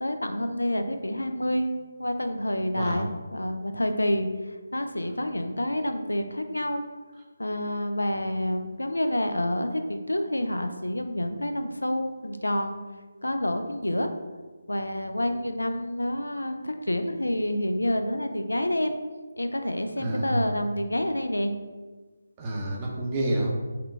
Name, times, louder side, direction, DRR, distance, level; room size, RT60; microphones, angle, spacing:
voice 1, 0.0-1.7 2.0-6.8 7.4-12.8 13.2-14.1 14.7-18.9 19.4-21.5, left 1 dB, 75° left, 7 dB, 0.4 m, -28 dB
voice 2, 2.8-3.1 20.0-20.5 22.4-23.5, right 1 dB, 20° right, -2 dB, 0.6 m, -28 dB
5.6 x 2.2 x 3.2 m, 1.3 s
figure-of-eight pair, 150°, 0 cm